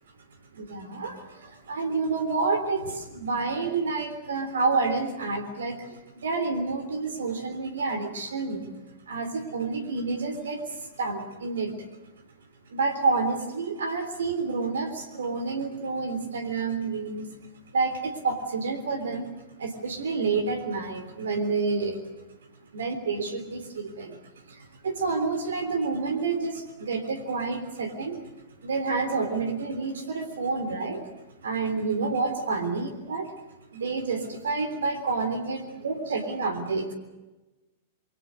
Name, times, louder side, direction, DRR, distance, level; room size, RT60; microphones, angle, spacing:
voice 1, 0.6-8.7 9.1-10.6 11.0-11.7 12.7-17.3 17.7-19.3 19.6-22.0 22.7-24.2 24.8-28.2 28.6-31.0 31.4-33.3 33.7-36.9, right 4 dB, 65° right, 9 dB, 3.5 m, -29 dB
27.0 x 24.0 x 6.5 m, 1.1 s
figure-of-eight pair, 100°, 0 cm